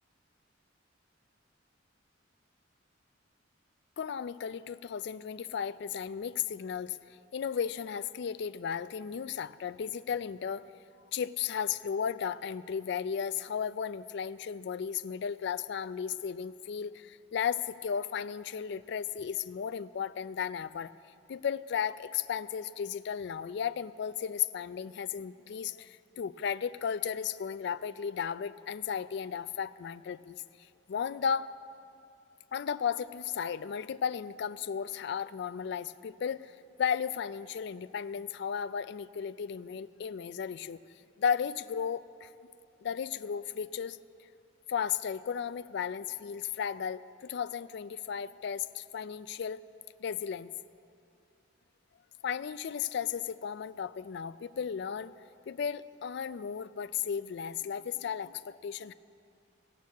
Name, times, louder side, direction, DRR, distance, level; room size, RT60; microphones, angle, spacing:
voice 1, 4.0-7.0 7.3-10.6 11.1-20.9 21.3-30.4 30.9-31.5 32.5-40.8 41.2-42.3 42.8-44.0 44.7-49.6 50.0-50.5 52.2-55.1 55.5-58.9, left 7 dB, 60° left, 16 dB, 0.3 m, -34 dB
16.5 x 6.7 x 8.3 m, 2.5 s
head